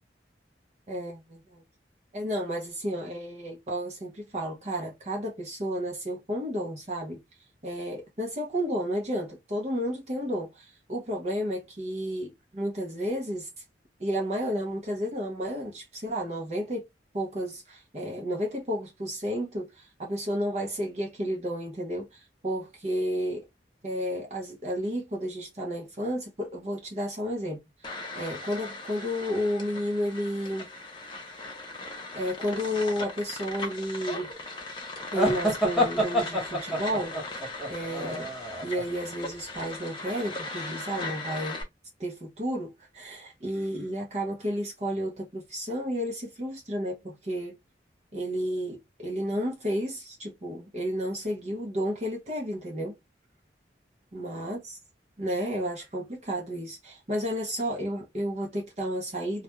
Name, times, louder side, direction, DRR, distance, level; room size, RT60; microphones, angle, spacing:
voice 1, 0.9-1.6 2.1-7.2 7.6-13.5 14.0-16.8 17.1-23.4 23.8-30.7 32.1-34.3 35.1-37.1 37.7-38.3 38.6-41.6 42.0-47.6 48.1-53.0 54.1-54.8 55.2-59.4, equal, 35° right, 0.7 m, -32 dB
sound 1, 27.8-41.6, left 2 dB, 25° left, 0.6 m, -39 dB
sound 2, 35.1-38.8, equal, 5° right, 0.9 m, -27 dB
2.4 x 2.2 x 2.8 m
head